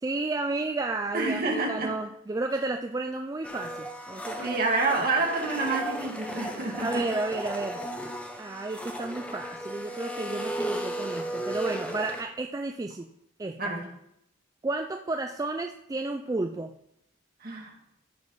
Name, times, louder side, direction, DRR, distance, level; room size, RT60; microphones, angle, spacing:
voice 1, 0.0-4.6 6.8-7.8 8.4-13.1 13.4-13.7 14.6-16.7, right 2 dB, 20° right, 5 dB, 0.3 m, -32 dB
voice 2, 1.1-1.9 4.4-7.0 13.6-13.9 17.4-17.7, right 3 dB, 50° right, -1 dB, 2.0 m, -28 dB
Domestic sounds home sounds, 3.4-12.2, right 1 dB, 5° left, 0.9 m, -35 dB
14.5 x 5.3 x 3.9 m, 0.76 s
head